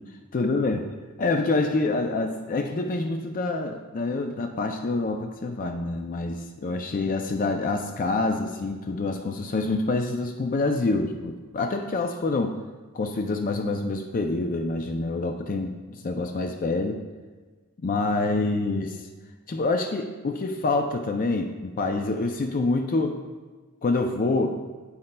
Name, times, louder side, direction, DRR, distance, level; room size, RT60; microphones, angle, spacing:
voice 1, 0.3-0.9 1.2-12.6 12.9-17.0 17.8-19.1 19.5-23.2 23.8-24.6, left 3 dB, 40° left, 5 dB, 0.4 m, -26 dB
13.0 x 4.3 x 2.2 m, 1.4 s
head